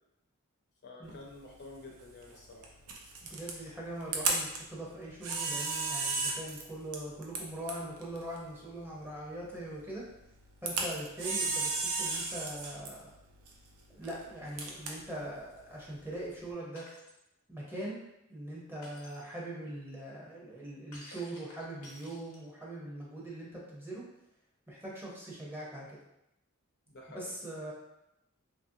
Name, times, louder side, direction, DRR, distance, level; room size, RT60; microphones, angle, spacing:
voice 1, 0.8-2.7 26.9-27.3, left 2 dB, 50° left, -1 dB, 0.6 m, -49 dB
Camera, 1.0-16.5, right 3 dB, 80° right, 0.5 m, -37 dB
voice 2, 3.2-10.0 10.6-13.1 14.0-16.8 17.5-18.0 18.3-24.0 24.7-26.0 27.1-27.7, right 1 dB, 10° right, -5 dB, 0.6 m, -42 dB
Shatter, 16.8-17.2 18.8-19.3 20.9-22.6, left 1 dB, 85° left, 0.8 m, -53 dB
2.8 x 2.6 x 2.6 m, 0.86 s
head